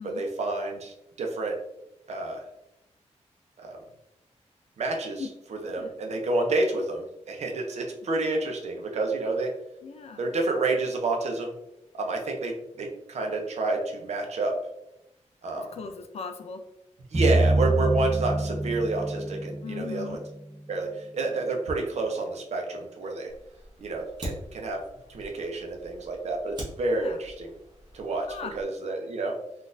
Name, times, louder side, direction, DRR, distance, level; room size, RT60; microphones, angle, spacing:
voice 1, 0.1-1.5 2.1-2.4 3.6-3.8 4.8-9.5 10.2-11.5 12.0-14.6 15.4-15.7 17.1-20.2 20.7-23.3 23.8-24.8 25.1-27.5 27.9-29.3, right 2 dB, 65° right, 2 dB, 0.6 m, -29 dB
voice 2, 9.8-10.2 15.5-16.6 19.6-20.2 26.9-27.2 28.3-28.5, left 5 dB, 60° left, 6 dB, 0.4 m, -38 dB
sound 1, 17.1-20.9, right 2 dB, 20° right, 0.6 m, -26 dB
Fire, 23.3-28.6, equal, 35° right, 1.0 m, -43 dB
3.9 x 2.4 x 2.5 m, 0.85 s
wide cardioid pair, 170°, 12 cm